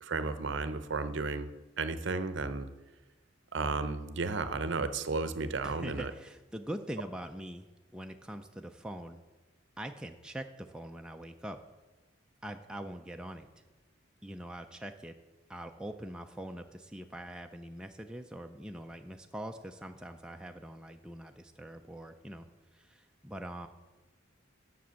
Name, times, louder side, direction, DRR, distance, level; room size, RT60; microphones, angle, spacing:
voice 1, 0.0-1.5 1.8-2.7 3.5-6.1, right 3 dB, 60° right, 12 dB, 0.6 m, -33 dB
voice 2, 5.6-7.7 7.9-9.2 9.8-11.6 12.4-13.5 14.2-15.1 15.5-23.7, right 1 dB, 5° right, 4 dB, 0.3 m, -43 dB
7.6 x 6.1 x 6.9 m, 1.1 s
head